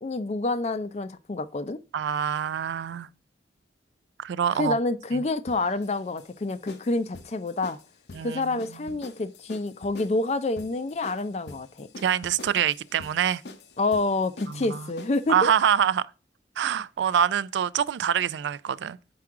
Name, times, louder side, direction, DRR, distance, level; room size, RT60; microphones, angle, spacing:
voice 1, 0.0-1.8 4.5-7.8 8.2-11.9 13.8-15.5, left 2 dB, 35° left, 0.4 m, -28 dB
voice 2, 1.9-3.1 4.2-4.8 8.1-8.6 12.0-13.4 14.5-14.8 15.3-16.1 16.6-19.0, right 8 dB, 85° right, 0.3 m, -25 dB
sound 1, 5.5-15.4, left 3 dB, 75° left, 0.8 m, -46 dB
6.0 x 4.7 x 3.6 m
head